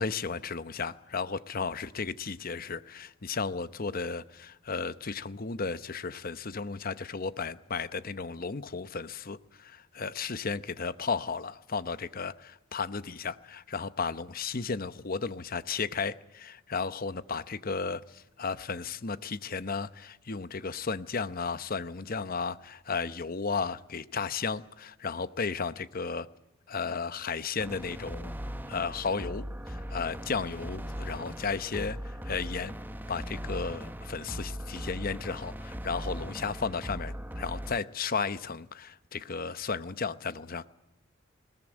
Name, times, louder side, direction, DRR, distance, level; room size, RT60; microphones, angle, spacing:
voice 1, 0.0-26.3 26.7-28.3 28.7-32.8 33.1-40.7, left 5 dB, 45° left, 0.8 m, -34 dB
sound 1, 27.6-37.8, equal, 10° right, 0.9 m, -39 dB
20.5 x 19.5 x 8.8 m
head